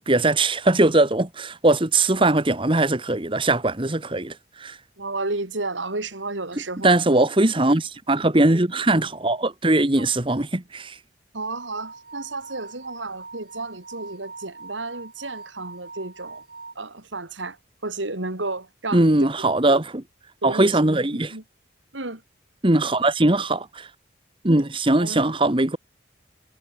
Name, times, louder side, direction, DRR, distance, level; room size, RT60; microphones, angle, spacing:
voice 1, 0.0-4.8 6.8-11.0 18.9-20.0 20.4-21.3 22.6-23.9 24.4-25.8, right 2 dB, 30° right, 1.5 m, -20 dB
voice 2, 5.0-7.0 10.0-10.1 11.3-16.4 16.8-19.2 20.4-20.7 21.3-21.4 21.9-22.2 25.0-25.2, right 2 dB, 90° right, 3.9 m, -32 dB
sound 1, 11.6-16.7, right 3 dB, 55° right, 5.8 m, -42 dB
head